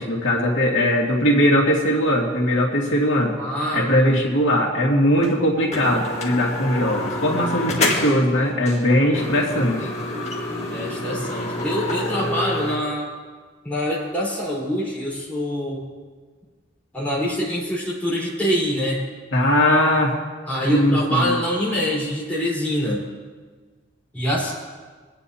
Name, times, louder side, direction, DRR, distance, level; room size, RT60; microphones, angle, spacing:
voice 1, 0.0-3.4 3.7-9.9 19.3-20.1 20.7-21.4, equal, 80° left, -2 dB, 2.2 m, -20 dB
voice 2, 3.4-3.9 10.7-13.1 13.6-15.8 16.9-19.0 20.5-23.0 24.1-24.5, equal, 10° left, -6 dB, 4.2 m, -24 dB
sound 1, 5.2-5.3 5.7-8.3 8.7-8.8 9.1-12.8, left 2 dB, 35° left, 1.8 m, -27 dB
24.5 x 9.8 x 2.8 m, 1.4 s
head